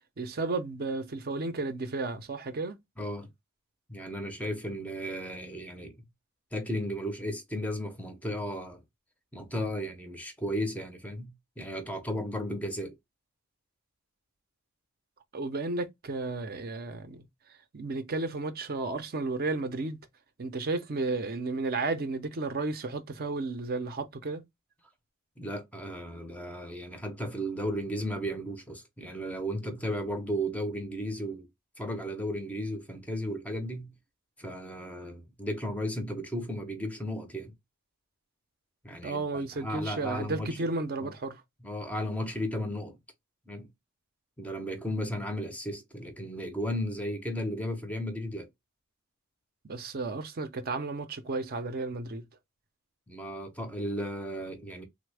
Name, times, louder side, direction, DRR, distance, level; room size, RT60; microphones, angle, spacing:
voice 1, 0.2-2.8 15.3-17.2 17.7-20.0 20.4-24.4 39.0-41.4 49.6-52.2, right 3 dB, 45° right, 0.5 m, -33 dB
voice 2, 3.0-3.3 3.9-6.0 6.5-8.8 9.3-13.0 25.4-31.5 31.8-33.9 34.4-37.5 38.8-40.6 41.0-41.1 41.6-43.0 43.5-43.7 44.4-48.5 53.1-54.9, equal, 5° left, 0.5 m, -34 dB
3.3 x 2.0 x 3.2 m
head